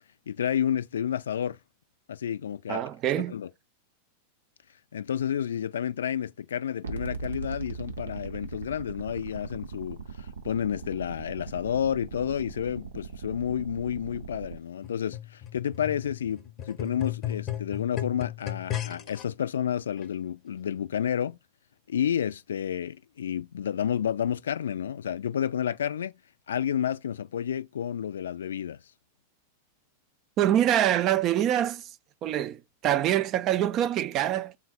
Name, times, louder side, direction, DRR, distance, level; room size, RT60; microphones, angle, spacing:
voice 1, 0.3-1.6 2.1-2.8 3.3-3.5 4.9-21.4 21.9-26.1 26.5-28.8, left 9 dB, 65° left, 0.3 m, -30 dB
voice 2, 2.7-3.4 30.4-31.9 32.2-34.6, right 11 dB, 35° right, 0.4 m, -25 dB
sound 1, 6.8-14.6, right 5 dB, 70° right, 0.7 m, -40 dB
sound 2, 14.8-19.2 20.0-20.1, left 12 dB, 30° left, 0.6 m, -35 dB
3.8 x 2.1 x 4.1 m
figure-of-eight pair, 90°, 0 cm